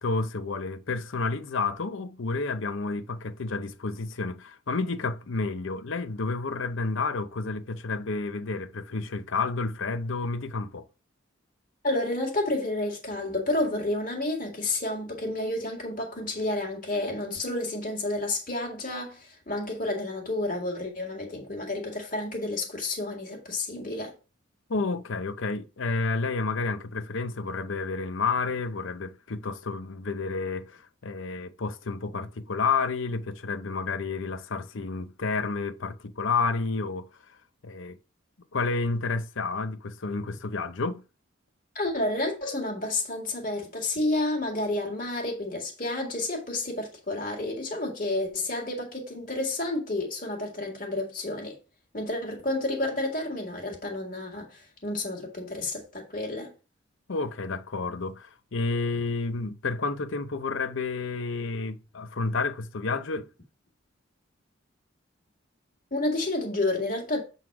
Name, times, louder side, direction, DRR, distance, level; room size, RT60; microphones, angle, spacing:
voice 1, 0.0-10.9 24.7-37.1 37.6-38.0 38.5-41.0 57.1-63.3, left 4 dB, 75° left, 0.7 m, -30 dB
voice 2, 11.8-24.1 41.8-51.6 51.9-56.5 65.9-67.2, left 2 dB, 40° left, 1.9 m, -30 dB
7.6 x 4.0 x 4.7 m
head